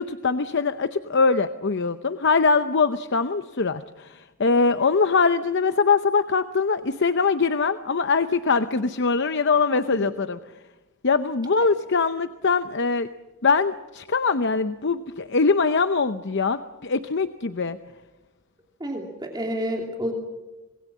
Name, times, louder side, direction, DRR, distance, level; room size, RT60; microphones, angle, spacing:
voice 1, 0.0-10.4 11.0-13.1 13.4-17.8, left 4 dB, 55° left, 10 dB, 0.7 m, -22 dB
voice 2, 18.8-20.1, equal, 20° right, 1 dB, 2.9 m, -29 dB
26.0 x 20.5 x 7.4 m, 1.1 s
head